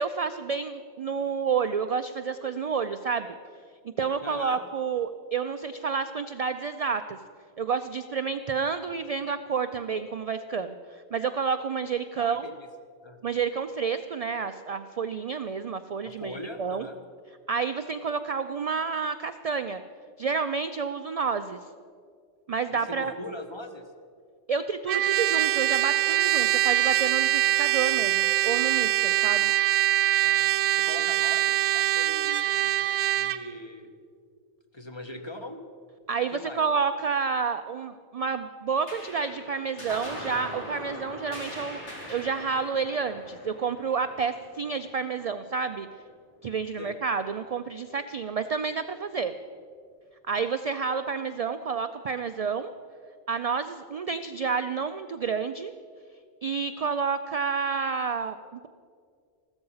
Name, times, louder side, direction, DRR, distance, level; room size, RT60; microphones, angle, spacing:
voice 1, 0.0-3.3 4.0-7.2 7.6-12.5 13.2-16.9 17.5-19.8 20.2-21.6 22.5-23.1 24.5-29.5 36.1-45.9 46.4-49.3 50.3-52.7 53.3-55.7 56.4-58.7, right 5 dB, 55° right, 9 dB, 0.4 m, -29 dB
voice 2, 4.2-4.6 12.2-12.7 13.0-13.2 16.0-17.0 22.7-23.9 30.2-33.9 34.7-35.6 36.3-36.6 46.8-47.0, left 1 dB, 25° left, 6 dB, 0.9 m, -41 dB
Trumpet, 24.9-33.4, right 14 dB, 75° right, 0.9 m, -24 dB
sound 1, 38.9-45.6, equal, 90° left, 3.8 m, -41 dB
15.0 x 13.5 x 5.6 m, 2.2 s
omnidirectional pair, 1.1 m